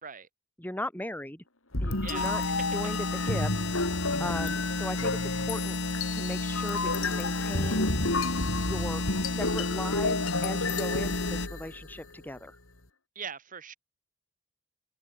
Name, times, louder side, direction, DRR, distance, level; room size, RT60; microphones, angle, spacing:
voice 1, 0.6-1.4 1.8-2.4 2.7-3.5 4.2-5.8 6.1-7.9 8.6-12.6, left 1 dB, 10° left, 2.8 m, -38 dB
sound 1, 1.7-12.0, left 2 dB, 85° left, 4.6 m, -31 dB
voice 2, 2.0-2.3 13.1-13.7, right 6 dB, 40° right, 3.2 m, -40 dB
sound 2, 2.1-11.5, left 3 dB, 60° left, 2.0 m, -32 dB
head